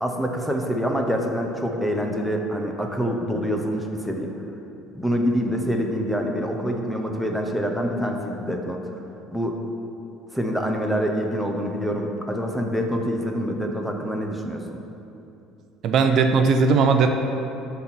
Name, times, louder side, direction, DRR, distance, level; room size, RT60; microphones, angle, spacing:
voice 1, 0.0-4.3 4.9-8.8 9.3-9.6 10.3-14.8, equal, ahead, 2 dB, 0.7 m, -26 dB
voice 2, 15.8-17.1, right 5 dB, 50° right, 5 dB, 0.6 m, -18 dB
12.5 x 4.1 x 6.0 m, 2.9 s
cardioid pair, 145°, 0 cm